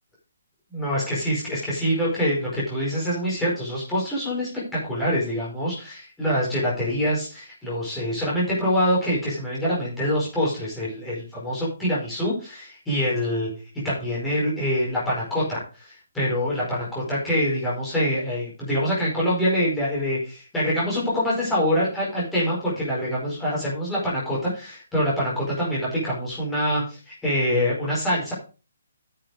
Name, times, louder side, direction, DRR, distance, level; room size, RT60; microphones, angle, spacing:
voice 1, 0.7-4.5 4.8-28.3, equal, 5° left, -7 dB, 4.9 m, -25 dB
10.0 x 7.7 x 4.9 m, 0.34 s
hypercardioid pair, 180°, 0 cm